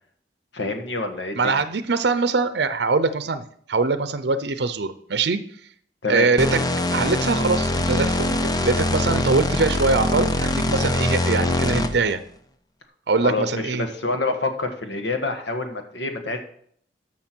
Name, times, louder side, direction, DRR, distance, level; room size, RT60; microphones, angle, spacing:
voice 1, 0.5-1.5 6.0-6.3 13.2-16.4, left 3 dB, 85° left, 6 dB, 1.5 m, -27 dB
voice 2, 1.3-5.4 6.1-6.6 6.9-8.4 8.6-12.2 13.1-13.8, right 4 dB, 65° right, 12 dB, 0.6 m, -22 dB
sound 1, 6.4-12.1, left 1 dB, 20° left, 0.7 m, -23 dB
13.0 x 6.0 x 4.5 m, 0.62 s
head